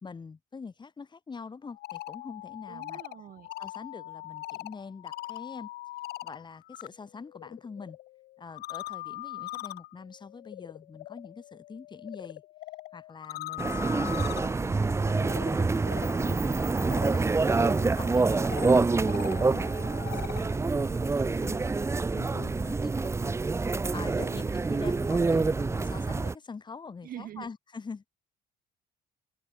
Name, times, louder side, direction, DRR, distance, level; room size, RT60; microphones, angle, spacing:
voice 1, 0.0-3.0 3.6-5.7 6.2-8.0 8.4-12.4 12.9-17.3 18.0-21.6 22.2-23.3 23.9-28.1, left 5 dB, 25° left, 2.6 m, -44 dB
sound 1, 1.6-6.9 7.2-20.5, left 17 dB, 70° left, 0.5 m, -42 dB
voice 2, 2.7-3.5 24.2-24.9 27.0-27.5, right 11 dB, 60° right, 2.6 m, -46 dB
sound 2, 13.6-26.3, right 3 dB, 15° right, 0.7 m, -27 dB
cardioid pair, 110°, 17 cm